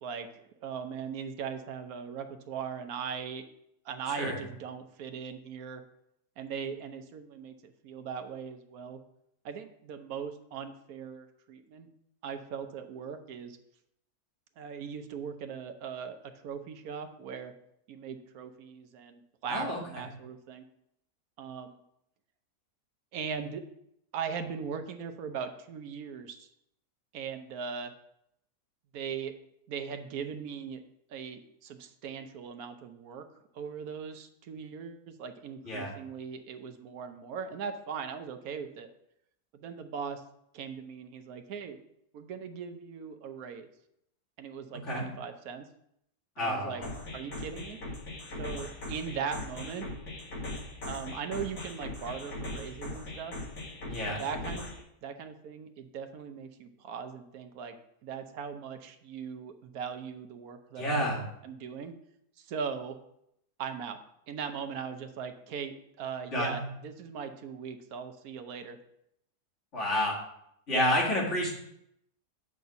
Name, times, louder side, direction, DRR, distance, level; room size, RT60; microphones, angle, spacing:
voice 1, 0.0-3.4 3.8-5.8 6.4-9.0 9.4-11.9 12.2-13.6 14.6-17.5 17.9-20.6 21.4-21.8 23.1-23.6 24.1-26.5 27.1-27.9 28.9-29.3 29.7-30.8 31.1-33.2 33.5-38.9 39.5-40.2 40.5-41.8 42.1-43.7 44.4-45.7 46.4-46.8 47.1-47.8 48.4-49.9 50.8-53.3 54.1-57.7 58.0-61.1 61.4-61.9 62.4-63.0 63.6-64.0 64.3-68.8 70.7-71.0, right 6 dB, 70° right, 7 dB, 1.2 m, -39 dB
voice 2, 19.5-20.1 35.6-35.9 44.8-45.1 46.4-46.9 53.8-54.2 60.8-61.2 66.3-66.6 69.7-70.1 70.7-71.5, left 1 dB, 50° left, -5 dB, 2.6 m, -30 dB
sound 1, 46.8-54.8, left 2 dB, 70° left, 2.1 m, -40 dB
7.3 x 4.0 x 5.7 m, 0.76 s
omnidirectional pair, 1.7 m